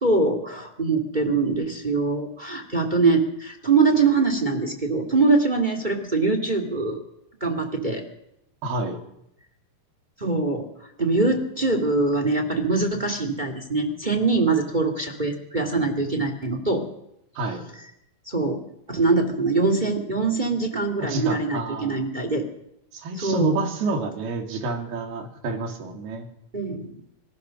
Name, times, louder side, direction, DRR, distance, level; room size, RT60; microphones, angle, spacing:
voice 1, 0.0-7.0 7.4-8.0 10.2-10.7 11.0-16.8 18.2-18.6 18.9-22.4 23.1-23.6 26.5-27.0, right 3 dB, 30° right, 5 dB, 0.8 m, -23 dB
voice 2, 8.6-9.0 17.4-17.6 21.0-22.0 22.9-26.3, right 3 dB, 55° right, 3 dB, 4.6 m, -29 dB
26.0 x 16.0 x 6.5 m, 0.81 s
omnidirectional pair, 5.5 m